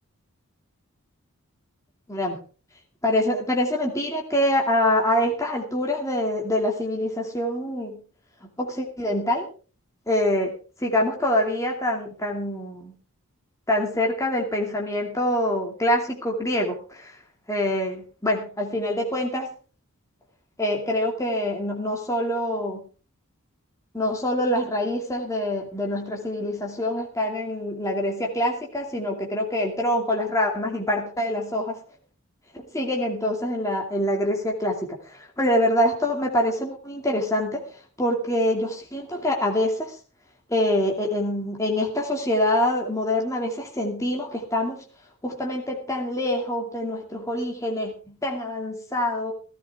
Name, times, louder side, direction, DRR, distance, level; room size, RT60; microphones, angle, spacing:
voice 1, 2.1-2.4 3.0-8.0 8.4-9.5 10.1-10.5 10.8-12.9 13.7-17.2 17.5-19.5 20.6-22.8 23.9-31.8 32.7-37.6 38.0-40.0 40.5-44.8 45.2-49.3, left 1 dB, 15° left, 0 dB, 2.5 m, -25 dB
17.0 x 14.5 x 3.6 m, 0.37 s
head